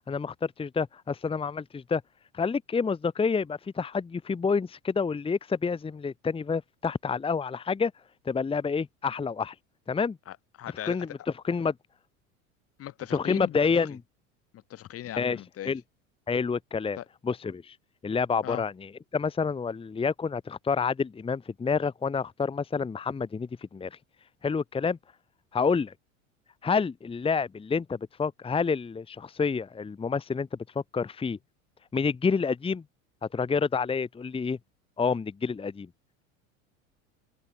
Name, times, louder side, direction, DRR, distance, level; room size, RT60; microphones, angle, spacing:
voice 1, 0.1-2.0 2.3-7.9 8.2-9.5 9.9-10.2 10.9-11.1 11.4-11.7 13.1-14.0 15.2-15.4 15.6-15.8 16.3-17.0 17.2-17.7 18.0-23.9 24.4-25.0 25.5-25.9 26.6-30.5 30.7-31.4 31.9-32.8 33.3-34.6 35.0-35.9, left 5 dB, 15° left, 1.1 m, -28 dB
voice 2, 10.3-11.0 12.8-13.6 14.7-15.7 17.0-17.1 18.4-18.6, left 12 dB, 35° left, 1.4 m, -38 dB
figure-of-eight pair, 80°, 40 cm